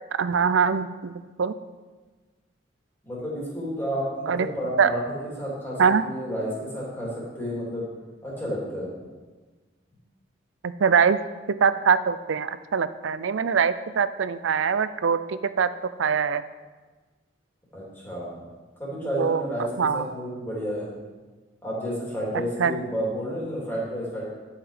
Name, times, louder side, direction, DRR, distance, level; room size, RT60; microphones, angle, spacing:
voice 1, 0.2-1.5 4.3-4.5 4.8-4.9 5.8-6.0 10.6-11.2 11.6-15.7 16.0-16.4 19.2-19.4 19.8-20.0 22.6-22.7, right 6 dB, 80° right, 13 dB, 0.4 m, -23 dB
voice 2, 3.0-7.8 8.2-8.9 17.7-18.4 18.8-20.9 21.6-24.2, equal, 10° left, -7 dB, 2.8 m, -31 dB
10.5 x 5.8 x 5.0 m, 1.3 s
head